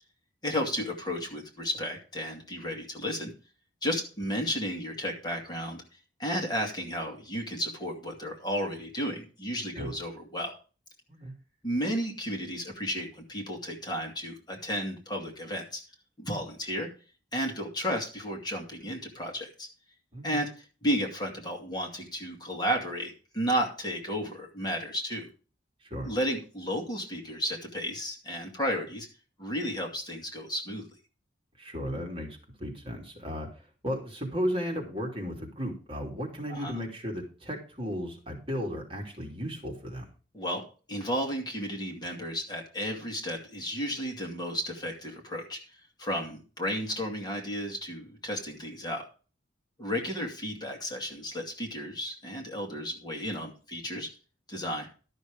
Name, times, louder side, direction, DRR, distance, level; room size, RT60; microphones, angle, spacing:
voice 1, 0.4-3.3 3.8-5.8 6.2-10.5 11.6-15.8 16.2-16.9 17.3-19.7 20.2-20.5 20.8-25.3 26.0-29.1 29.4-30.9 36.5-36.8 40.3-40.6 40.9-45.6 46.0-49.0 49.8-54.1 54.5-54.9, equal, 25° left, 1 dB, 2.4 m, -33 dB
voice 2, 31.6-40.1, equal, 30° right, 0 dB, 2.9 m, -35 dB
12.5 x 6.6 x 5.2 m, 0.36 s
head